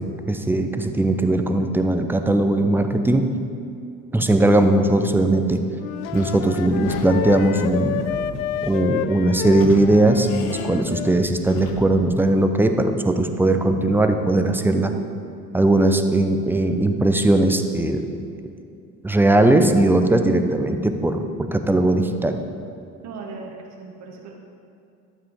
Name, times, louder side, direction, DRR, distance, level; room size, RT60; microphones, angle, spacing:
voice 1, 0.0-3.3 4.1-5.6 6.1-8.0 8.6-14.9 15.5-18.1 19.0-22.4, right 2 dB, 5° right, 6 dB, 0.7 m, -19 dB
Wind instrument woodwind instrument, 5.7-11.3, left 11 dB, 65° left, 0.5 m, -29 dB
Sliding door / Squeak, 6.0-12.1, left 5 dB, 45° left, 1.1 m, -37 dB
voice 2, 23.0-24.3, right 4 dB, 35° right, -1 dB, 1.3 m, -37 dB
12.0 x 7.8 x 3.7 m, 2.5 s
figure-of-eight pair, 60°, 44 cm